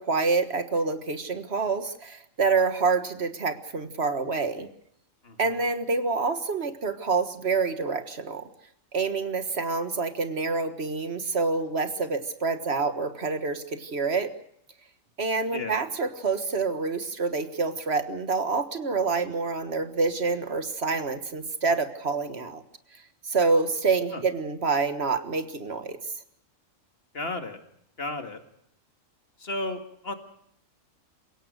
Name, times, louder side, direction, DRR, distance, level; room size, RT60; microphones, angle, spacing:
voice 1, 0.0-4.7 5.4-8.4 8.9-14.3 15.2-22.6 23.2-26.0, right 4 dB, 50° right, 9 dB, 1.7 m, -27 dB
voice 2, 5.2-5.6 15.5-15.7 24.1-24.2 27.1-27.6 28.0-28.4 29.4-30.1, left 2 dB, 45° left, 7 dB, 2.4 m, -34 dB
28.0 x 17.0 x 6.5 m, 0.70 s
omnidirectional pair, 1.4 m